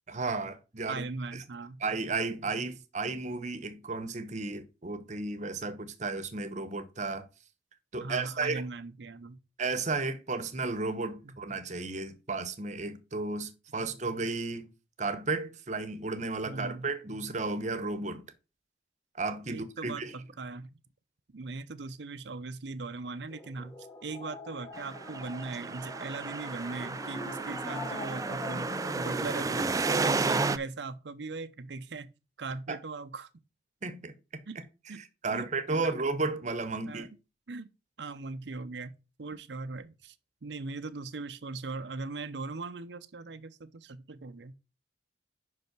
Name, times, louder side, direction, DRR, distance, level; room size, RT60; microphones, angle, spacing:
voice 1, 0.1-1.0 1.3-1.4 1.8-7.2 7.9-8.6 9.6-14.7 15.0-18.2 19.1-20.1 32.7-32.8 33.8-34.4 35.0-37.1, right 3 dB, 40° right, 1.0 m, -33 dB
voice 2, 0.9-1.8 8.0-9.4 11.2-11.4 13.8-13.9 16.5-16.9 19.5-20.8 21.3-23.7 24.0-32.1 32.4-33.3 34.5-34.6 34.9-35.0 35.3-36.0 36.9-37.1 37.5-37.7 38.0-40.2 40.4-44.5, right 3 dB, 80° right, 0.7 m, -39 dB
sound 1, 23.3-29.8, left 1 dB, 20° left, 1.2 m, -42 dB
sound 2, 24.8-30.6, right 4 dB, 20° right, 0.3 m, -32 dB
5.6 x 5.4 x 5.9 m
head